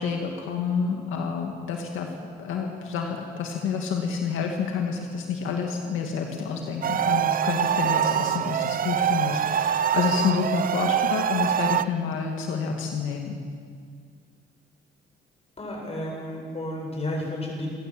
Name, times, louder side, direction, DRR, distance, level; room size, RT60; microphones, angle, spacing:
voice 1, 0.0-2.1 2.4-13.4, left 5 dB, 85° left, 2 dB, 2.2 m, -28 dB
sound 1, 6.8-11.9, right 9 dB, 45° right, 0.6 m, -24 dB
voice 2, 15.6-17.7, left 1 dB, 30° left, 0 dB, 7.7 m, -32 dB
28.5 x 14.5 x 7.8 m, 2.1 s
cardioid pair, 90°, 20 cm